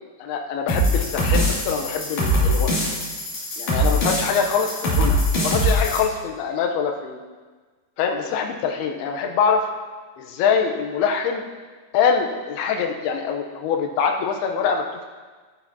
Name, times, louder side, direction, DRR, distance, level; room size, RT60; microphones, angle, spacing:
voice 1, 0.2-2.8 3.6-5.2 5.4-7.2 8.0-9.7 10.2-11.4 11.9-15.1, left 6 dB, 80° left, 3 dB, 2.6 m, -24 dB
sound 1, 0.7-6.0, equal, 50° left, 3.6 m, -22 dB
11.5 x 10.5 x 2.8 m, 1.4 s
omnidirectional pair, 4.9 m